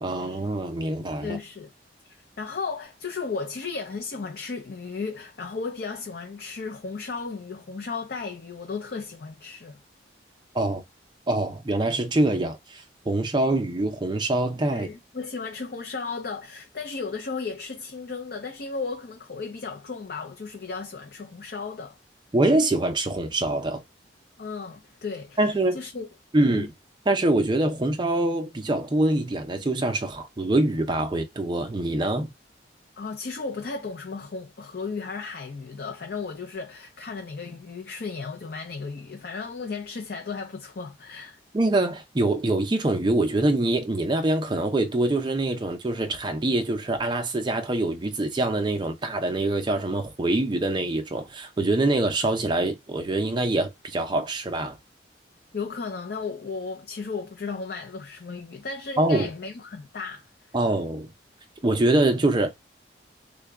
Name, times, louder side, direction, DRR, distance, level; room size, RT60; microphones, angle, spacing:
voice 1, 0.0-1.4 10.5-10.8 11.3-14.9 22.3-23.8 25.4-25.8 26.3-26.7 27.1-32.3 41.5-54.8 59.0-59.3 60.5-61.1 61.6-62.5, right 2 dB, 25° right, 0.4 m, -24 dB
voice 2, 1.2-1.7 2.1-9.8 14.7-22.0 24.4-25.5 25.7-26.1 26.4-26.7 33.0-41.4 55.5-60.3, left 4 dB, 55° left, 0.5 m, -35 dB
3.8 x 2.2 x 3.4 m
head